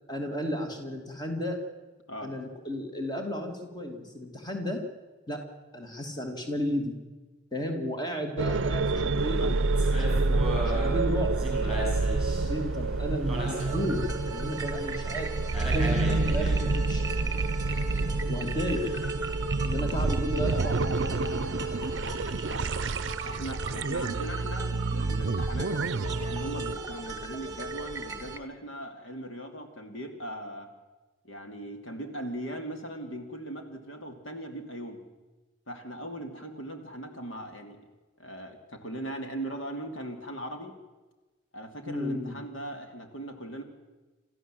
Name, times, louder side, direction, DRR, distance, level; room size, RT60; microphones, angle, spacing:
voice 1, 0.1-1.6 2.2-4.8 5.3-6.9 7.5-9.5 10.1-10.3 10.7-11.5 12.3-17.1 18.3-19.0 19.6-21.6 41.9-42.4, equal, 20° left, 3 dB, 2.5 m, -34 dB
sound 1, 8.4-26.7, right 3 dB, 65° right, 0.6 m, -28 dB
sound 2, 9.2-19.1, equal, 5° right, 6.7 m, -38 dB
sound 3, 13.3-28.4, right 2 dB, 20° right, 1.5 m, -37 dB
voice 2, 23.1-25.8 26.2-30.7 31.2-35.0 35.7-37.8 38.2-40.7 41.5-43.6, right 1 dB, 70° left, 5 dB, 2.6 m, -39 dB
27.5 x 14.0 x 7.7 m, 1.2 s
head